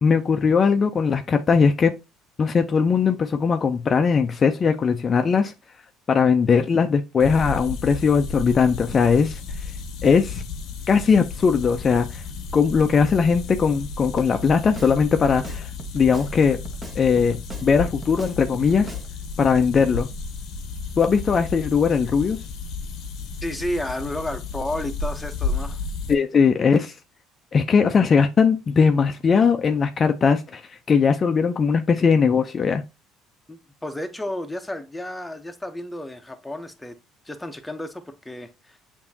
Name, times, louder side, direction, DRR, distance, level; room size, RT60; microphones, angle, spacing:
voice 1, 0.0-1.9 2.4-5.5 6.1-9.4 10.0-10.4 10.9-12.2 12.5-16.6 17.0-18.9 19.4-20.1 21.0-22.4 26.1-26.9 27.5-30.6 30.9-32.8, left 5 dB, 40° left, 0.4 m, -19 dB
sound 1, 7.2-26.1, left 4 dB, 65° left, 0.8 m, -33 dB
Drum kit, 14.4-15.0 15.3-16.3 16.6-17.7 18.0-19.1 19.4-19.6, right 3 dB, 25° right, 0.9 m, -39 dB
voice 2, 23.4-25.8 33.5-37.0 37.2-38.8, left 1 dB, 10° left, 0.8 m, -32 dB
6.8 x 2.7 x 2.7 m
supercardioid pair, 75°, 0 cm